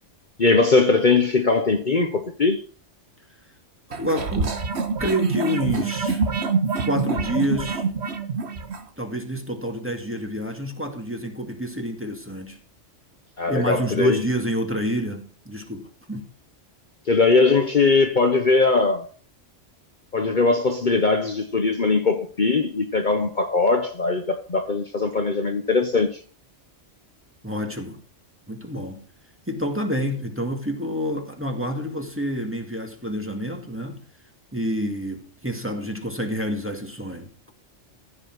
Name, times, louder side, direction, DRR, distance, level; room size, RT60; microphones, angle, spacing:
voice 1, 0.4-2.6 13.4-14.2 17.1-19.1 20.1-26.2, left 3 dB, 45° left, 1.2 m, -20 dB
voice 2, 3.9-4.6 5.0-6.2 6.8-7.9 9.0-12.6 13.5-16.3 27.4-28.0 28.5-29.0 29.5-34.0 34.5-37.5, equal, 10° right, 2.2 m, -28 dB
sound 1, 3.9-8.8, right 4 dB, 65° right, 1.5 m, -25 dB
15.5 x 6.0 x 6.1 m
omnidirectional pair, 1.2 m